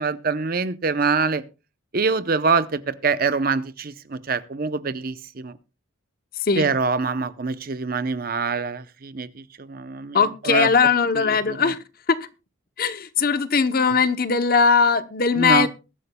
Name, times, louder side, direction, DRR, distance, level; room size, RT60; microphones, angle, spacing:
voice 1, 0.0-1.4 1.9-5.5 6.6-10.7 11.1-11.7 15.3-15.7, right 4 dB, 45° right, 0.7 m, -25 dB
voice 2, 10.1-11.8 12.1-12.2 12.8-15.7, left 5 dB, 45° left, 0.8 m, -19 dB
21.5 x 11.0 x 2.2 m
head